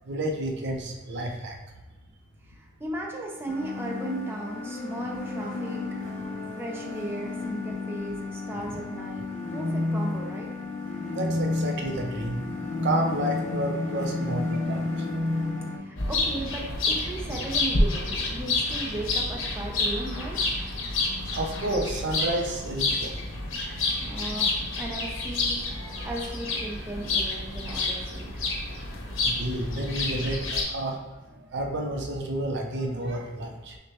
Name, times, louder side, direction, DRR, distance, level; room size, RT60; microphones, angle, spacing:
voice 1, 0.0-1.6 8.7-8.8 11.2-12.4 12.8-15.1 21.3-23.2 23.9-24.4 29.2-31.0 31.3-33.8, right 1 dB, 60° right, 2 dB, 0.5 m, -31 dB
voice 2, 2.5-5.8 6.6-9.3 9.5-10.6 15.8-20.4 24.0-28.5, right 1 dB, 10° right, -2 dB, 0.5 m, -36 dB
sound 1, 3.5-15.8, left 2 dB, 35° left, 0.8 m, -31 dB
sound 2, 16.0-30.6, left 2 dB, 70° left, 0.8 m, -29 dB
6.2 x 2.2 x 2.8 m, 1.2 s
head